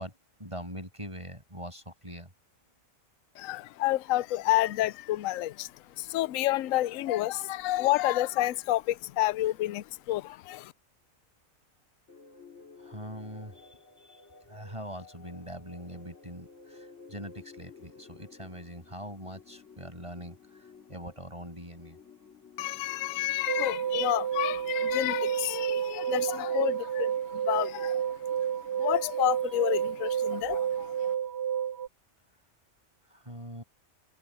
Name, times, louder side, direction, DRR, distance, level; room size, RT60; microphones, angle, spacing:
voice 1, 0.0-2.3 12.8-14.2 14.5-22.0 33.1-33.6, equal, 20° right, 7.5 m, -43 dB
voice 2, 3.4-10.7 22.6-28.4 28.8-31.1, left 15 dB, 75° left, 0.9 m, -29 dB
sound 1, 12.1-25.8, left 4 dB, 55° left, 3.5 m, -54 dB
sound 2, 23.5-31.9, right 9 dB, 55° right, 0.8 m, -30 dB
omnidirectional pair, 1.4 m